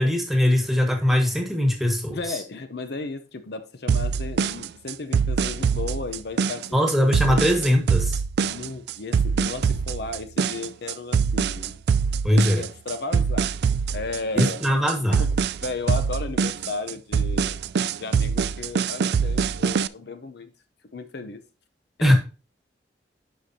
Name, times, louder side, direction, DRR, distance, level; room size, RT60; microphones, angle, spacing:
voice 1, 0.0-2.4 6.7-8.2 12.2-12.6 14.4-15.2 22.0-22.1, left 1 dB, ahead, 1.5 m, -21 dB
voice 2, 2.1-6.8 7.3-7.5 8.4-11.8 12.3-13.6 13.9-14.6 15.1-20.5 20.9-21.4 22.0-22.1, left 3 dB, 65° left, 0.7 m, -34 dB
sound 1, 3.9-19.9, right 6 dB, 65° right, 0.3 m, -24 dB
11.0 x 5.1 x 2.7 m
head